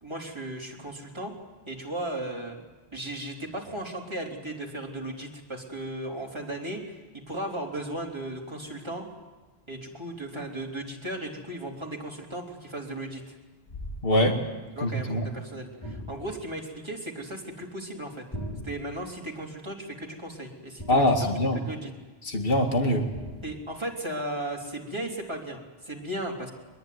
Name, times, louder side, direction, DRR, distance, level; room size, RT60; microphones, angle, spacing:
voice 1, 0.0-1.3 1.7-2.6 2.9-9.1 9.7-13.3 14.7-18.3 18.6-21.3 21.6-21.9 23.4-26.5, right 1 dB, 25° right, -1 dB, 3.7 m, -36 dB
voice 2, 14.0-14.4 14.8-15.2 20.9-21.6 22.2-23.1, left 1 dB, 60° left, 3 dB, 2.5 m, -23 dB
sound 1, 15.8-16.6 18.3-19.1 20.8-21.5 23.1-23.8, equal, 25° left, 4.2 m, -40 dB
22.5 x 22.0 x 9.5 m, 1.2 s
omnidirectional pair, 1.1 m